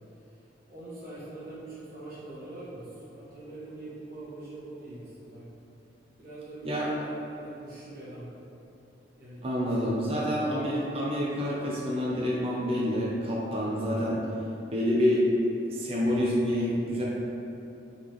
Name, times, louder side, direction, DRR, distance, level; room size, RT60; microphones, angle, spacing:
voice 1, 0.7-5.4 6.2-6.9 7.3-8.3 9.1-9.8 10.3-11.0, right 2 dB, 55° right, -9 dB, 1.4 m, -43 dB
voice 2, 9.4-14.2 14.7-15.3 15.7-17.0, equal, 35° right, -5 dB, 0.5 m, -27 dB
3.9 x 3.5 x 3.0 m, 2.8 s
head